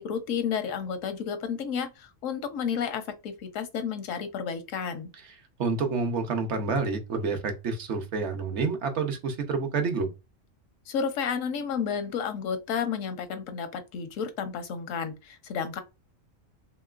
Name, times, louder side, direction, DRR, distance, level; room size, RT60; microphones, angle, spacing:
voice 1, 0.0-5.1 10.9-15.8, left 7 dB, 85° left, 1.0 m, -31 dB
voice 2, 5.6-10.1, right 4 dB, 65° right, 0.9 m, -28 dB
3.0 x 2.9 x 2.3 m
omnidirectional pair, 1.3 m